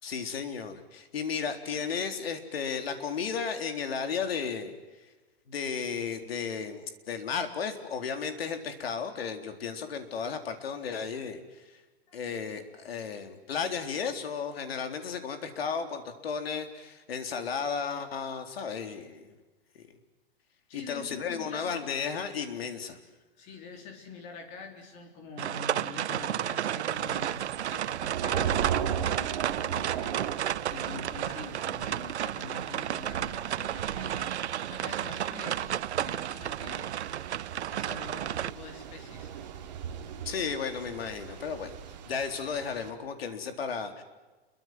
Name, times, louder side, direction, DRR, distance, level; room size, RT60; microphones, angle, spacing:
voice 1, 0.0-4.7 5.5-11.4 12.1-19.3 19.8-19.9 20.7-23.0 40.3-41.8 42.1-44.0, left 6 dB, 65° left, 7 dB, 3.9 m, -34 dB
voice 2, 20.7-21.7 23.4-30.2 30.7-34.3 34.7-37.2 37.7-39.3 39.9-40.0, left 4 dB, 20° left, 4 dB, 3.8 m, -45 dB
sound 1, 25.4-38.5, right 11 dB, 85° right, 0.8 m, -32 dB
Thunder / Rain, 26.9-42.9, right 8 dB, 40° right, 3.0 m, -38 dB
29.5 x 23.5 x 7.7 m, 1.2 s
hypercardioid pair, 175°, 33 cm